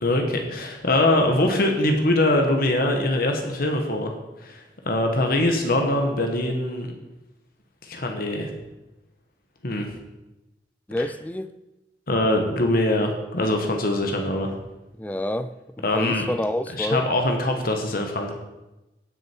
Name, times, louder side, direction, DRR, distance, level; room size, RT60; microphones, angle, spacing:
voice 1, 0.0-4.1 4.4-6.9 7.8-8.5 9.6-9.9 12.1-14.5 15.8-16.3 16.8-18.3, left 1 dB, 55° left, 3 dB, 1.4 m, -23 dB
voice 2, 10.9-11.5 15.0-15.5 15.9-17.1, left 1 dB, 10° left, 12 dB, 0.4 m, -27 dB
16.5 x 6.6 x 4.6 m, 1.0 s
head